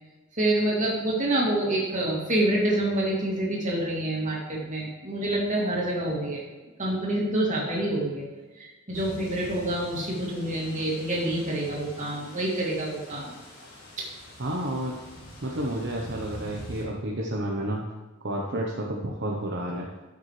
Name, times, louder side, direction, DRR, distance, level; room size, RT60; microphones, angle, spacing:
voice 1, 0.4-6.4 6.8-8.2 8.6-13.3 14.0-14.1, right 1 dB, 35° right, -3 dB, 2.7 m, -27 dB
sound 1, 8.9-16.8, equal, 85° left, 3.1 m, -45 dB
voice 2, 14.4-15.0 15.4-17.8 18.2-19.9, right 1 dB, 55° right, -2 dB, 1.0 m, -30 dB
13.0 x 7.2 x 3.3 m, 1.2 s
head